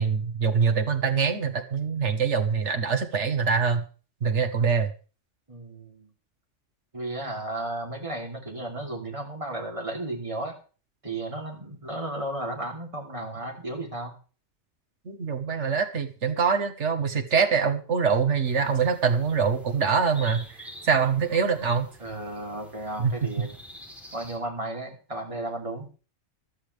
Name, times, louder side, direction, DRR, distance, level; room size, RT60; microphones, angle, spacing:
voice 1, 0.0-3.8 4.2-4.9 15.0-21.9 23.0-23.1, right 6 dB, 70° right, 6 dB, 1.6 m, -24 dB
voice 2, 5.5-6.1 6.9-10.6 11.0-14.1 22.0-23.5 24.1-25.9, right 1 dB, 25° right, 0 dB, 3.3 m, -34 dB
sound 1, 18.4-24.4, equal, ahead, 3.2 m, -48 dB
14.0 x 13.0 x 3.4 m, 0.37 s
omnidirectional pair, 1.3 m